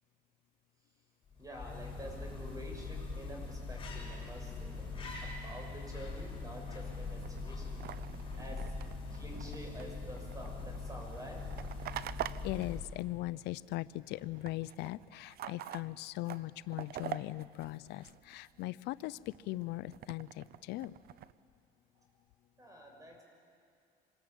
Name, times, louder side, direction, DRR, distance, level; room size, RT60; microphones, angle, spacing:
sound 1, 1.3-13.1, left 3 dB, 30° left, 6.9 m, -42 dB
voice 1, 1.4-4.9 5.2-8.6 9.1-11.4 22.6-23.2, right 1 dB, 20° right, 1 dB, 6.8 m, -48 dB
sound 2, 7.2-13.8 14.0-18.7 19.1-21.3, right 11 dB, 65° right, 0.7 m, -46 dB
voice 2, 12.4-20.9, left 18 dB, 85° left, 17 dB, 0.5 m, -39 dB
25.5 x 20.5 x 9.0 m, 2.3 s
cardioid pair, 110°, 17 cm